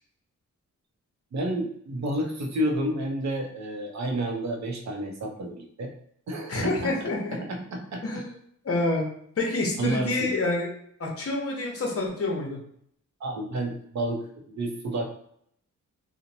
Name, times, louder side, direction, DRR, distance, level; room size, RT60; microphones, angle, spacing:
voice 1, 1.3-5.9 6.3-6.9 7.3-8.2 9.8-10.3 13.2-15.0, right 1 dB, 60° right, 2 dB, 0.7 m, -30 dB
voice 2, 6.5-7.4 8.0-8.3 8.6-9.1 9.4-10.7 11.0-12.6, left 2 dB, 45° left, -1 dB, 0.8 m, -27 dB
2.8 x 2.1 x 2.6 m, 0.68 s
wide cardioid pair, 120°, 32 cm